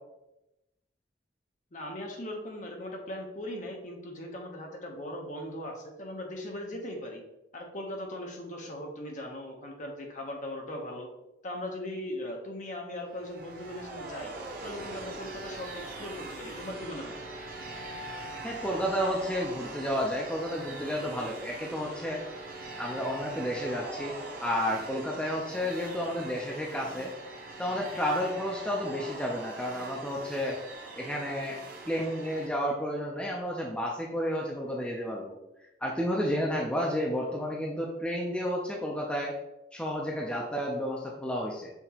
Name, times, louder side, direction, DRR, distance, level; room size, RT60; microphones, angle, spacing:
voice 1, 1.7-7.2 7.5-11.1 11.4-14.3 14.6-17.2, left 1 dB, 40° left, 1 dB, 0.7 m, -39 dB
sound 1, 13.0-32.5, right 2 dB, 50° right, 0.7 m, -42 dB
voice 2, 18.4-22.2 22.8-24.1 24.4-27.1 27.6-30.6 31.0-31.6 31.9-35.3 35.8-39.3 39.7-41.7, equal, 5° left, -2 dB, 0.4 m, -31 dB
5.8 x 2.8 x 2.8 m, 0.95 s
head